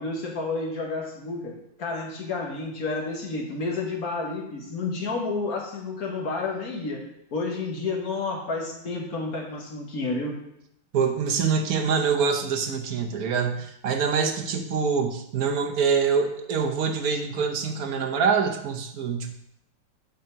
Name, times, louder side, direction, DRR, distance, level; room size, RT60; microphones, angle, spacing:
voice 1, 0.0-10.3, left 3 dB, 50° left, 0 dB, 1.6 m, -30 dB
voice 2, 10.9-19.4, right 6 dB, 60° right, 3 dB, 1.0 m, -25 dB
7.7 x 4.3 x 5.7 m, 0.77 s
omnidirectional pair, 2.3 m